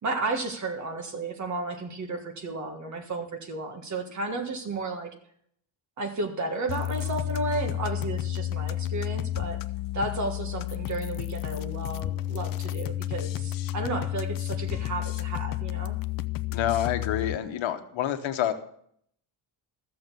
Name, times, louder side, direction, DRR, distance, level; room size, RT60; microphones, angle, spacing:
voice 1, 0.0-5.1 6.0-9.6 9.9-16.0, right 2 dB, 35° right, 4 dB, 1.6 m, -33 dB
sound 1, 6.7-17.4, left 14 dB, 45° left, 0.5 m, -31 dB
voice 2, 16.5-18.5, left 10 dB, 70° left, 7 dB, 1.2 m, -28 dB
14.0 x 7.0 x 6.8 m, 0.67 s
cardioid pair, 175°, 48 cm